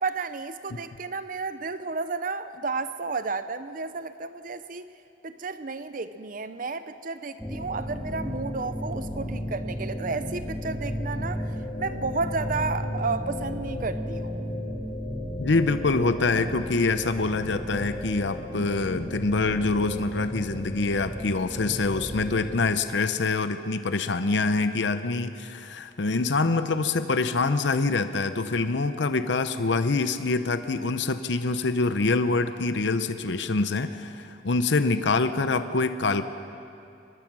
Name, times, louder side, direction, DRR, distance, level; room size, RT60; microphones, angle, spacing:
voice 1, 0.0-4.9 5.2-11.5 11.8-14.5, right 4 dB, 45° right, 12 dB, 0.6 m, -32 dB
sound 1, 7.4-22.6, equal, 10° left, 2.0 m, -34 dB
voice 2, 15.4-36.2, left 3 dB, 70° left, 10 dB, 0.7 m, -25 dB
24.0 x 21.0 x 6.1 m, 2.6 s
head